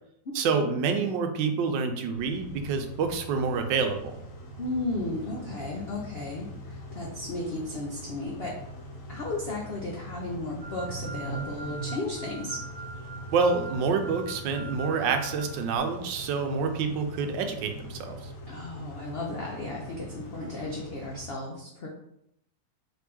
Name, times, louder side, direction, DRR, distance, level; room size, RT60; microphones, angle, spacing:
voice 1, 0.3-4.2 13.3-18.2, right 5 dB, 80° right, 6 dB, 1.3 m, -27 dB
Car / Idling / Accelerating revving vroom, 2.1-21.2, equal, 55° left, 1.0 m, -42 dB
voice 2, 4.6-8.6 9.1-12.6 18.5-21.9, left 2 dB, 90° left, -2 dB, 0.5 m, -34 dB
sound 1, 10.6-15.8, right 3 dB, 40° right, 0.5 m, -43 dB
4.2 x 3.2 x 3.4 m, 0.76 s
omnidirectional pair, 2.0 m